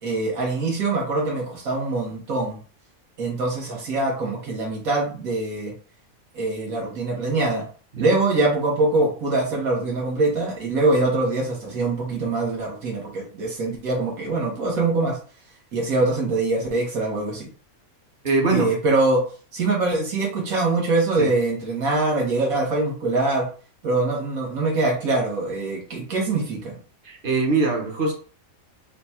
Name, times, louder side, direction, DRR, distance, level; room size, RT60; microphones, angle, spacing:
voice 1, 0.0-2.6 3.2-5.7 6.3-7.6 8.0-15.2 15.7-17.5 18.5-19.2 19.5-23.5 23.8-26.8, right 2 dB, 75° right, -1 dB, 1.8 m, -23 dB
voice 2, 18.2-18.8 21.2-21.3 27.0-28.1, right 3 dB, 40° right, 2 dB, 1.0 m, -22 dB
4.0 x 2.3 x 4.2 m, 0.39 s
omnidirectional pair, 1.5 m